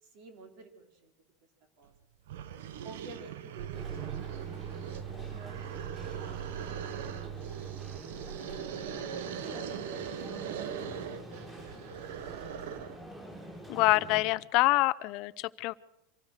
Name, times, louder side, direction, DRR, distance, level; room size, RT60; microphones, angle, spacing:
voice 1, 0.0-1.1 1.8-1.9 2.8-5.6 6.1-12.7, right 3 dB, 45° right, 6 dB, 3.6 m, -53 dB
sound 1, 1.9-2.0 2.3-13.1, right 9 dB, 80° right, 1.2 m, -41 dB
sound 2, 3.6-11.2, right 11 dB, 65° right, 0.8 m, -43 dB
sound 3, 3.7-14.2, right 1 dB, 15° right, 7.2 m, -46 dB
voice 2, 13.7-15.7, left 21 dB, 45° left, 16 dB, 0.6 m, -26 dB
25.5 x 16.0 x 6.6 m, 0.89 s
supercardioid pair, 170°, 0 cm